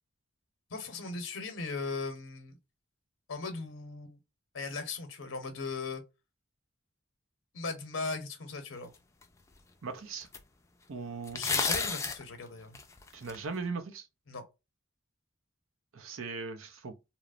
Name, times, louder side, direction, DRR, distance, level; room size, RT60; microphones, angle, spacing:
voice 1, 0.7-2.6 3.3-4.2 4.5-6.0 7.5-8.9 11.3-12.8 14.3-14.5, left 4 dB, 85° left, 0.7 m, -38 dB
sound 1, 9.2-9.3 10.3-10.4 11.3-12.2 12.8-13.4, left 4 dB, 15° left, 0.3 m, -31 dB
voice 2, 9.8-10.3 10.9-11.4 13.1-14.1 15.9-16.9, right 4 dB, 90° right, 0.6 m, -39 dB
2.9 x 2.0 x 2.4 m
head